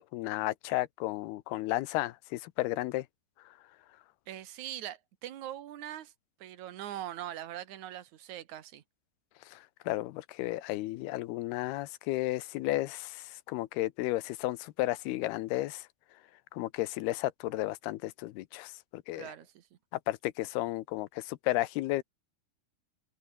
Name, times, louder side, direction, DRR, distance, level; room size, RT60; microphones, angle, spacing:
voice 1, 0.0-3.1 9.5-15.9 16.5-19.3 20.1-22.0, left 17 dB, 80° left, 2.7 m, -33 dB
voice 2, 4.3-6.1 6.4-8.8 19.1-19.7, right 12 dB, 60° right, 2.4 m, -42 dB
omnidirectional pair, 4.7 m